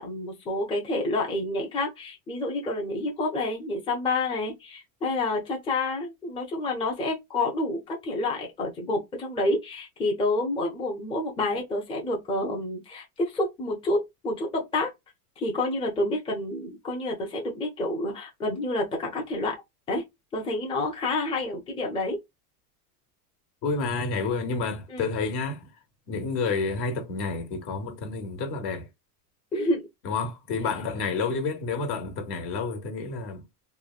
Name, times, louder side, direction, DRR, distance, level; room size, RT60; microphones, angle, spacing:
voice 1, 0.0-14.9 15.4-19.6 19.9-20.0 20.3-22.2 24.9-25.1 29.5-29.9, left 2 dB, 10° left, 0.5 m, -29 dB
voice 2, 23.6-25.7 26.1-28.9 30.0-33.4, left 4 dB, 55° left, 1.1 m, -29 dB
3.1 x 2.2 x 2.4 m
supercardioid pair, 125°, 46 cm